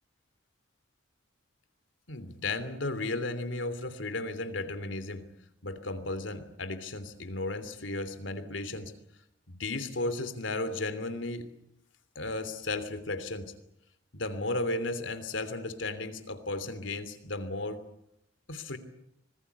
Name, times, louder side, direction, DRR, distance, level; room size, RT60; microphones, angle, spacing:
voice 1, 2.1-5.2 5.6-8.9 9.5-11.4 12.1-13.5 14.1-17.8 18.5-18.8, left 2 dB, 85° left, 11 dB, 3.0 m, -34 dB
25.5 x 20.5 x 8.3 m, 0.79 s
head